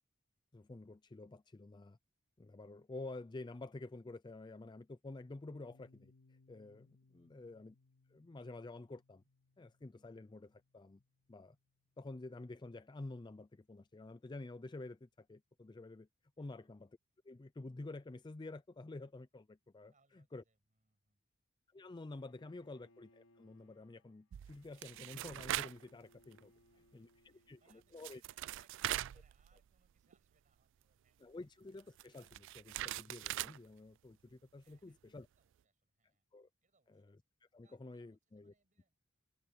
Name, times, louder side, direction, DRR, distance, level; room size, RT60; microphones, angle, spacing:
voice 1, 0.5-2.0 2.4-7.8 8.1-9.2 9.6-11.0 11.3-11.6 12.0-16.1 16.4-16.9 17.2-20.4 21.7-26.5 26.9-28.2 31.2-35.3 36.3-36.5 36.9-37.2 37.5-38.5, left 2 dB, 20° left, 0.4 m, -50 dB
Piano, 5.5-12.9, left 3 dB, 65° left, 2.3 m, -71 dB
voice 2, 16.4-16.7 19.9-21.2 22.6-22.7 26.5-31.2 34.6-36.3 36.6-37.1 37.6-39.0, right 4 dB, 40° right, 7.5 m, -77 dB
Bowed string instrument, 22.1-28.2, left 1 dB, 90° left, 5.7 m, -70 dB
sound 1, 24.3-25.8 26.2-26.4 27.7-27.8 28.0-29.9 30.1-30.2 31.8-33.6, right 14 dB, 65° right, 0.3 m, -41 dB
head